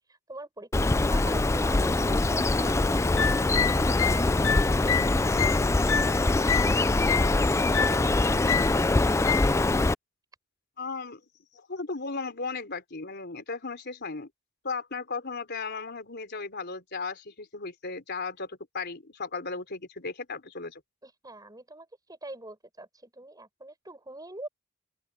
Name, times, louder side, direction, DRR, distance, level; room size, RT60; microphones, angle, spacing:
voice 1, 0.1-4.8 21.0-24.5, right 2 dB, 15° right, 7.5 m, -44 dB
Bird, 0.7-9.9, left 2 dB, 15° left, 0.3 m, -24 dB
sound 1, 3.0-6.7 7.1-7.4 7.7-8.1 8.5-8.8 9.3-9.6, left 8 dB, 65° left, 1.0 m, -28 dB
voice 2, 10.8-11.2 11.5-14.3 14.6-20.8, left 4 dB, 50° left, 4.1 m, -36 dB
open air
head